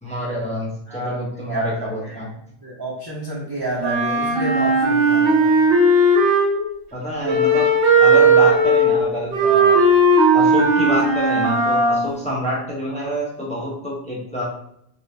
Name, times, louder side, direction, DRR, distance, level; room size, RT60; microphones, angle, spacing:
voice 1, 0.0-2.3 6.9-9.9 10.3-14.4, equal, 5° left, -5 dB, 0.8 m, -27 dB
voice 2, 1.5-2.2 2.6-5.5, right 2 dB, 25° right, -5 dB, 0.6 m, -29 dB
Wind instrument woodwind instrument, 3.8-6.7 7.2-12.1, right 2 dB, 60° right, 1.0 m, -16 dB
3.5 x 3.0 x 2.7 m, 0.73 s
omnidirectional pair, 1.2 m